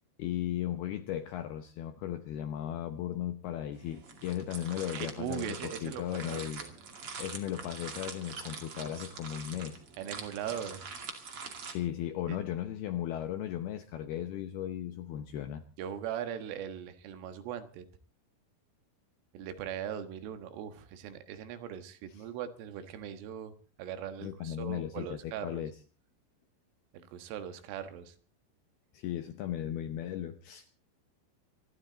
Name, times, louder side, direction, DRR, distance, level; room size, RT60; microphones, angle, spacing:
voice 1, 0.2-6.6 7.2-9.8 11.7-15.6 24.2-25.7 28.9-30.7, left 11 dB, 80° left, 9 dB, 2.3 m, -36 dB
sound 1, 3.7-11.7, right 5 dB, 40° right, 2.3 m, -44 dB
voice 2, 4.9-6.7 10.0-10.8 12.3-12.4 15.8-17.9 19.3-23.5 23.8-25.7 26.9-28.2, right 9 dB, 85° right, 9 dB, 4.0 m, -40 dB
27.0 x 12.0 x 4.0 m, 0.38 s
omnidirectional pair, 5.6 m